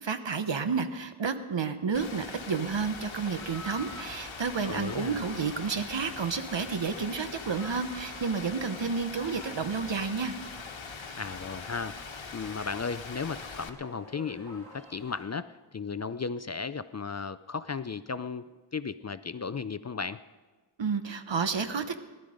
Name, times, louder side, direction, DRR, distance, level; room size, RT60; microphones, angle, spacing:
voice 1, 0.0-10.3 20.8-22.0, right 5 dB, 65° right, 10 dB, 1.1 m, -31 dB
Rain, 1.9-13.7, left 5 dB, 65° left, 1.3 m, -42 dB
sound 1, 2.7-15.2, left 1 dB, 5° left, 6.1 m, -51 dB
voice 2, 4.6-5.2 11.2-12.0 12.3-18.4 18.7-20.2, left 5 dB, 35° left, 14 dB, 0.4 m, -35 dB
19.0 x 12.0 x 5.1 m, 1.3 s
wide cardioid pair, 75°, 48 cm